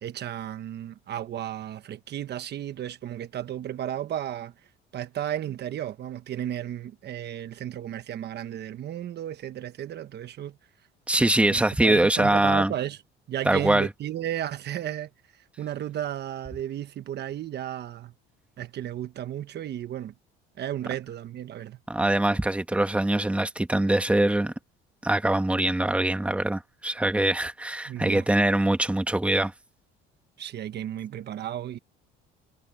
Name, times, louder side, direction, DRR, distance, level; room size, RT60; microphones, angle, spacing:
voice 1, 0.0-4.5 4.9-10.6 11.5-13.0 13.3-18.1 18.6-20.1 20.6-21.8 27.9-28.3 30.4-31.8, right 11 dB, 55° right, 1.2 m, -34 dB
voice 2, 11.1-12.7 13.4-13.9 21.9-24.5 25.0-29.5, right 1 dB, 5° right, 1.6 m, -23 dB
cardioid pair, 105°, 21 cm